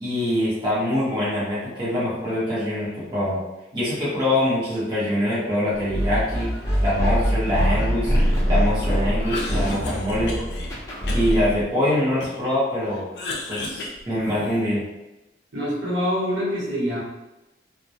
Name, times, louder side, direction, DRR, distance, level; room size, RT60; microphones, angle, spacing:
voice 1, 0.0-3.4 3.7-6.5 6.8-8.1 8.5-10.4 11.1-13.0 13.5-14.8, left 1 dB, 25° right, -10 dB, 0.8 m, -24 dB
sound 1, 5.9-11.6, equal, 15° left, 0.6 m, -23 dB
Cough, 9.1-10.7 11.1-12.5 12.9-14.8, left 2 dB, 65° left, 0.4 m, -34 dB
voice 2, 15.5-17.0, equal, 80° right, -8 dB, 1.0 m, -25 dB
2.1 x 2.1 x 2.7 m, 0.99 s
head